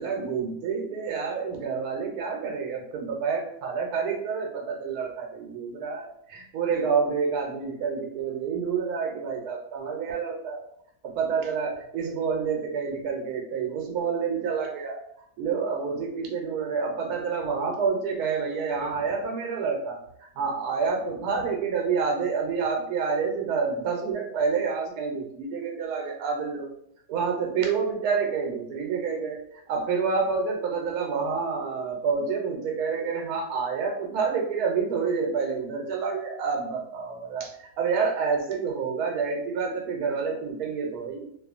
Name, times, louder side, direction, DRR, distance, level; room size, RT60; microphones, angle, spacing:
voice 1, 0.0-10.6 11.0-15.0 15.4-26.7 27.1-41.3, right 5 dB, 80° right, 2 dB, 1.1 m, -28 dB
2.6 x 2.3 x 2.4 m, 0.71 s
omnidirectional pair, 1.6 m